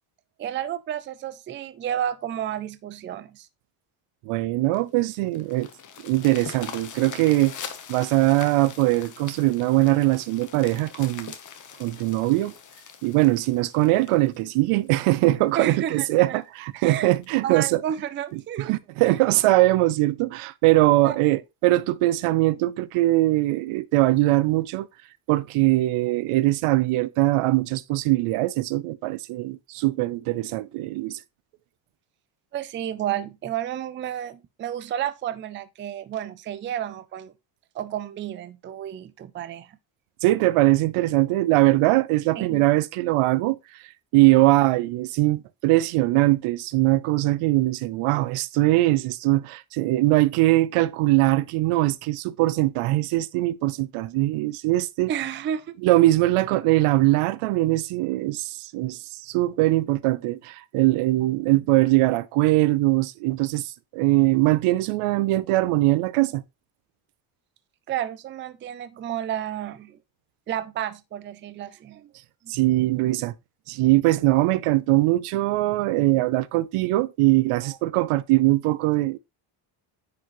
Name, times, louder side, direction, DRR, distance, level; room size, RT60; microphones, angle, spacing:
voice 1, 0.4-3.5 15.6-16.4 16.8-17.1 17.4-18.7 19.0-19.2 21.0-21.2 32.5-37.3 37.7-39.8 42.4-42.6 44.5-44.7 55.1-55.7 67.9-70.0 70.5-72.1 72.4-72.5 77.6-77.8, right 10 dB, 25° right, 0.3 m, -31 dB
voice 2, 4.3-5.7 6.0-7.6 7.9-11.3 11.8-12.5 13.0-17.8 18.6-24.9 25.3-31.2 40.2-43.6 44.1-55.1 55.8-66.4 72.5-73.3 73.7-79.2, right 18 dB, 90° right, 0.7 m, -21 dB
sound 1, 4.7-15.2 15.8-15.9 16.3-16.4 16.8-16.9 17.2-17.5 18.4-18.5, left 7 dB, 35° left, 1.0 m, -42 dB
9.5 x 4.9 x 3.0 m
cardioid pair, 165°, 50 cm